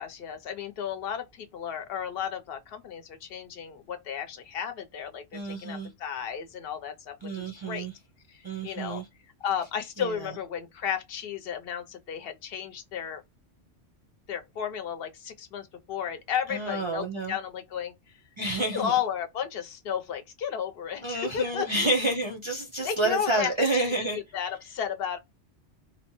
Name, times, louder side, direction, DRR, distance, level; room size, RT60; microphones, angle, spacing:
voice 1, 0.0-7.9 8.3-9.0 9.4-13.2 14.3-17.9 18.6-21.7 22.8-25.2, left 8 dB, 60° left, 0.8 m, -33 dB
voice 2, 5.3-5.9 7.2-7.9 8.4-9.1 10.0-10.3 16.5-17.4 18.4-18.9 21.0-24.2, right 2 dB, 35° right, 0.5 m, -29 dB
2.8 x 2.1 x 2.9 m
omnidirectional pair, 1.2 m